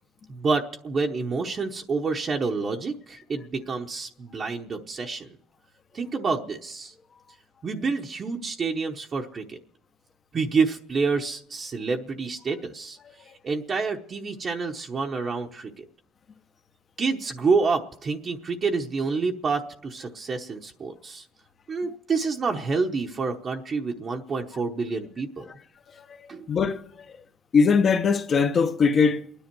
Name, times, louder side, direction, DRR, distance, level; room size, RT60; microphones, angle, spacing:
voice 1, 0.3-5.3 5.9-6.9 7.6-9.6 10.3-13.0 13.4-15.8 17.0-21.3 21.7-25.5 26.3-26.5, right 4 dB, 35° right, 0.9 m, -28 dB
voice 2, 26.5-27.2 27.5-29.2, left 5 dB, 40° left, 1.0 m, -21 dB
29.0 x 10.0 x 4.6 m
cardioid pair, 115°, 0 cm